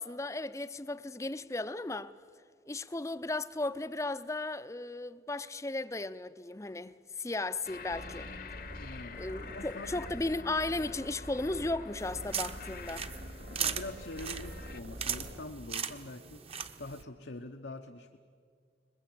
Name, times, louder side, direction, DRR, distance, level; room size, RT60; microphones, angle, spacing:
voice 1, 0.0-2.1 2.7-8.3 9.1-13.1, left 2 dB, 15° left, 0.5 m, -35 dB
sound 1, 7.6-14.8, left 4 dB, 50° left, 0.9 m, -48 dB
sound 2, 7.9-15.4, equal, 75° right, 2.3 m, -46 dB
voice 2, 8.8-9.2 9.5-10.0 13.4-16.4 16.8-18.2, left 2 dB, 85° left, 1.0 m, -44 dB
sound 3, 12.0-17.0, right 7 dB, 35° right, 0.9 m, -39 dB
22.5 x 21.0 x 8.6 m
head